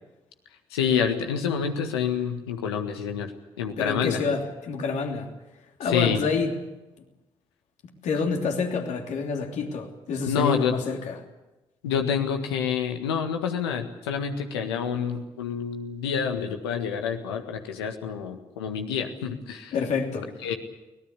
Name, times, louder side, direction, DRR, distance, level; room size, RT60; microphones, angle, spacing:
voice 1, 0.7-3.3 3.6-4.2 5.8-6.2 10.3-10.8 11.8-19.7 20.4-20.5, left 7 dB, 85° left, 5 dB, 1.7 m, -27 dB
voice 2, 3.8-5.3 5.8-6.5 8.0-11.2 19.7-20.3, left 5 dB, 65° left, 2 dB, 3.1 m, -28 dB
23.5 x 18.5 x 8.3 m, 1.0 s
hypercardioid pair, 40°, 13 cm